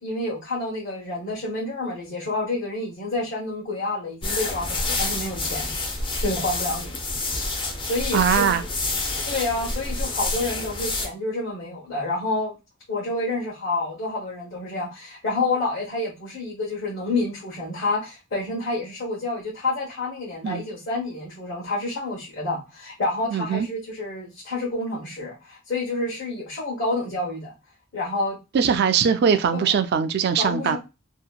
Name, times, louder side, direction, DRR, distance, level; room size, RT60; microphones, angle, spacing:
voice 1, 0.0-5.7 6.2-7.0 7.8-8.6 9.3-12.5 12.9-27.5 27.9-28.4 29.5-29.8 30.4-30.8, left 2 dB, 60° left, 1.0 m, -28 dB
sound 1, 4.2-11.1, left 2 dB, 25° left, 0.5 m, -28 dB
voice 2, 8.1-8.6 20.4-20.6 23.3-23.7 28.5-30.8, right 7 dB, 50° right, 0.3 m, -21 dB
2.8 x 2.1 x 2.3 m
head